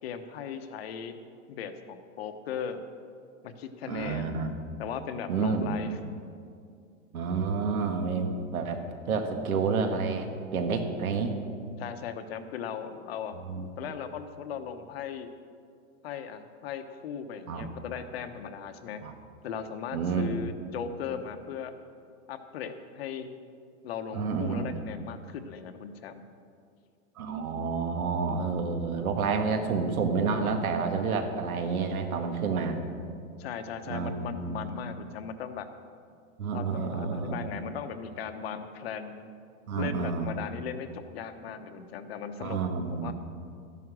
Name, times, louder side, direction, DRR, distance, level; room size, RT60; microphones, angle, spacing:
voice 1, 0.0-1.1 1.5-2.8 3.4-4.4 4.8-6.0 11.8-13.3 13.8-15.3 16.0-19.0 19.4-21.7 22.3-23.3 23.8-26.2 33.4-35.7 36.5-39.3 39.8-42.6 42.9-43.1, left 7 dB, 45° left, 8 dB, 1.0 m, -38 dB
voice 2, 3.9-4.5 5.3-5.7 7.1-11.4 13.4-13.9 17.5-17.7 19.0-19.1 19.9-20.4 24.1-24.8 27.2-32.8 33.9-34.7 36.4-37.5 39.7-40.3 42.4-43.1, right 5 dB, 85° right, 5 dB, 2.0 m, -29 dB
13.5 x 11.0 x 6.3 m, 2.3 s
supercardioid pair, 170°, 42 cm